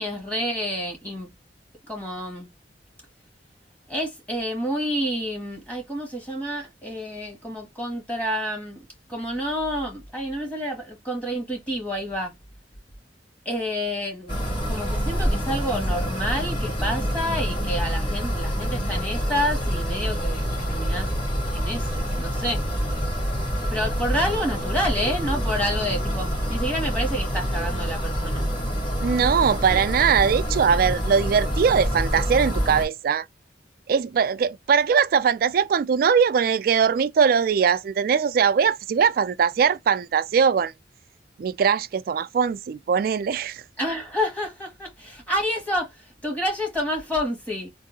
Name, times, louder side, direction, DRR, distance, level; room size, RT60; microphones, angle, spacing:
voice 1, 0.0-1.3 1.9-2.5 3.9-12.3 13.4-14.4 14.7-21.1 21.5-22.6 23.6-28.5 43.8-45.9 46.2-47.7, equal, 10° left, 1.6 m, -29 dB
sound 1, 14.3-32.8, equal, 25° left, 2.3 m, -26 dB
voice 2, 29.0-33.3 33.9-40.7 41.4-43.6, right 6 dB, 55° right, 0.3 m, -21 dB
3.7 x 2.6 x 2.6 m
head